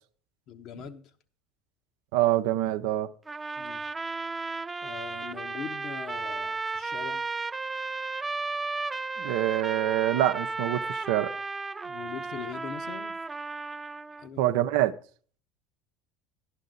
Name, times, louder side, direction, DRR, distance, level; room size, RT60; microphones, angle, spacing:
voice 1, 0.5-1.1 3.6-3.8 4.8-7.3 11.8-13.1 14.2-14.5, left 7 dB, 55° left, 1.2 m, -41 dB
voice 2, 2.1-3.1 9.2-11.3 14.4-14.9, right 14 dB, 70° right, 0.6 m, -25 dB
sound 1, 3.3-14.3, right 3 dB, 20° right, 0.4 m, -34 dB
11.5 x 11.5 x 3.9 m
hypercardioid pair, 75°, 0 cm